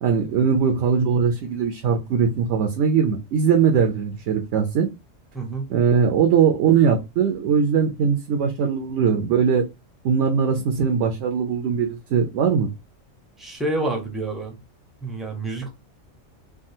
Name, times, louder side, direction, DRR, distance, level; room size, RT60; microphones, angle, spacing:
voice 1, 0.0-4.9 5.7-9.6 10.0-12.7, right 6 dB, 70° right, 0.9 m, -20 dB
voice 2, 5.3-5.7 13.4-14.6 15.0-15.7, right 2 dB, ahead, 0.5 m, -28 dB
3.6 x 2.3 x 2.6 m
omnidirectional pair, 1.4 m